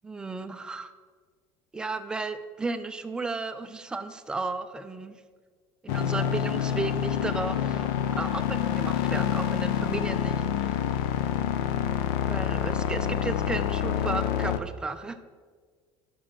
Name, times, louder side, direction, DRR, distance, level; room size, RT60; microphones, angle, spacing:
voice 1, 0.0-0.9 1.7-5.2 5.8-10.8 12.2-15.2, right 3 dB, 5° right, 9 dB, 0.3 m, -34 dB
sound 1, 5.9-14.6, left 9 dB, 80° left, 0.5 m, -27 dB
5.9 x 5.7 x 6.3 m, 1.6 s
cardioid pair, 160°, 11 cm